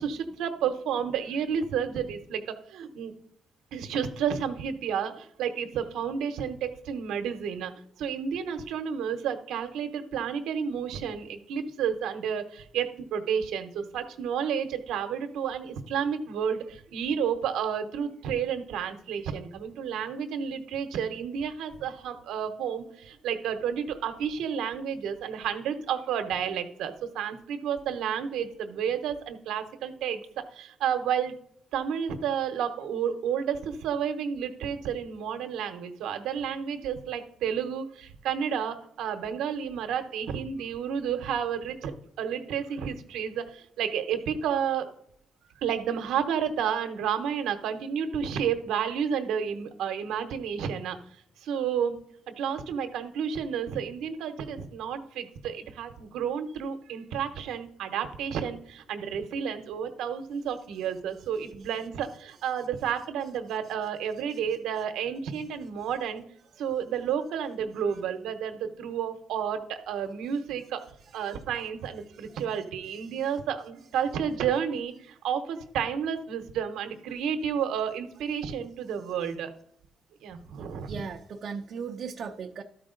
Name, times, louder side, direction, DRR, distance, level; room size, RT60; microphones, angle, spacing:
voice 1, 0.0-3.1 3.7-7.7 8.0-30.2 30.5-31.4 31.7-41.9 42.2-44.9 45.6-52.0 52.3-66.2 66.6-70.8 71.1-79.5 80.2-81.0, right 8 dB, 85° right, 8 dB, 0.9 m, -31 dB
voice 2, 80.6-82.6, right 6 dB, 55° right, 2 dB, 0.6 m, -37 dB
12.5 x 4.7 x 3.8 m, 0.71 s
cardioid pair, 90°, 0 cm